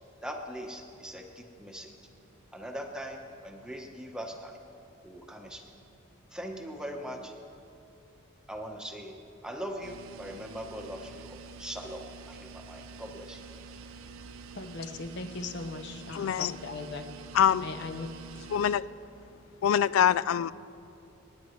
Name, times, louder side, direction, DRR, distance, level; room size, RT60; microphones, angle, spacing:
voice 1, 0.2-1.9 2.5-4.6 5.0-5.6 6.3-7.3 8.5-9.1 9.4-13.4, equal, 5° right, 1.0 m, -40 dB
sound 1, 9.8-18.8, right 4 dB, 80° right, 0.5 m, -47 dB
voice 2, 14.6-17.0 17.6-18.1, left 3 dB, 55° left, 0.8 m, -39 dB
voice 3, 16.1-16.5 17.3-17.7 18.5-18.8 19.6-20.5, left 9 dB, 80° left, 0.3 m, -24 dB
27.0 x 10.0 x 3.2 m
head